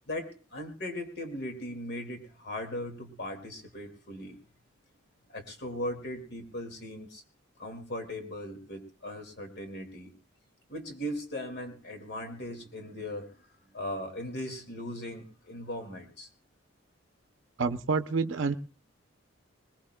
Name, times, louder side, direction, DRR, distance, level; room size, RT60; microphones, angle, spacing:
voice 1, 0.1-4.4 5.3-7.2 7.6-10.1 10.7-16.3, left 1 dB, 50° left, 5 dB, 2.1 m, -38 dB
voice 2, 17.6-18.6, right 4 dB, 70° right, 9 dB, 0.6 m, -28 dB
21.0 x 20.5 x 2.2 m, 0.34 s
head